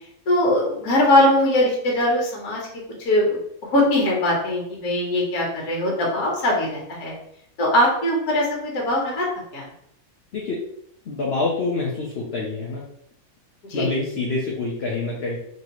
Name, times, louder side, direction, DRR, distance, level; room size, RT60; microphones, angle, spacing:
voice 1, 0.3-2.6 3.0-3.4 3.7-7.1 7.6-9.3 9.5-9.7 13.7-13.9, left 1 dB, 70° left, -2 dB, 1.7 m, -21 dB
voice 2, 11.1-12.8 13.7-15.4, left 3 dB, 50° left, -3 dB, 0.8 m, -26 dB
4.2 x 2.9 x 3.0 m, 0.72 s
omnidirectional pair, 1.7 m